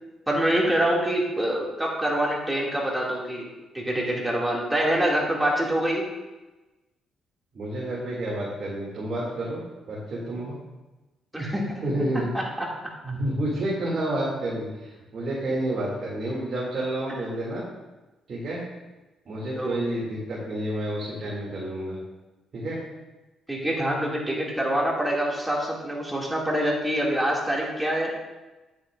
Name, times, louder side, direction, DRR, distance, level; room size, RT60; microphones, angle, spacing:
voice 1, 0.3-3.5 3.7-6.1 11.3-11.8 12.3-12.7 19.6-19.8 23.5-28.1, right 1 dB, 10° right, -3 dB, 2.2 m, -25 dB
voice 2, 7.5-9.6 9.9-10.6 11.8-12.3 13.0-17.6 18.3-18.6 19.3-22.0 22.5-22.8, right 1 dB, 50° right, -6 dB, 2.4 m, -29 dB
9.5 x 8.3 x 2.5 m, 1.1 s
cardioid pair, 90°, 0 cm